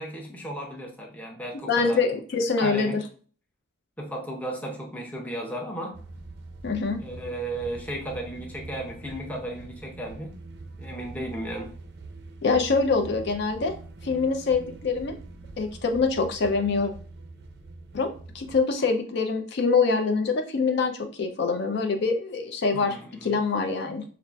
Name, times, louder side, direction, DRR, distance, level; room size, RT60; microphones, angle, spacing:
voice 1, 0.0-2.0 2.6-3.0 4.0-6.0 7.0-10.3 10.8-11.7 22.7-23.4, right 1 dB, 5° left, -1 dB, 0.5 m, -35 dB
voice 2, 1.7-3.0 6.6-7.0 12.4-13.7 14.0-15.2 15.6-16.9 17.9-24.0, left 4 dB, 55° left, 5 dB, 0.4 m, -25 dB
sound 1, 5.9-18.6, right 2 dB, 50° right, 0.4 m, -43 dB
5.7 x 2.4 x 2.2 m, 0.43 s
head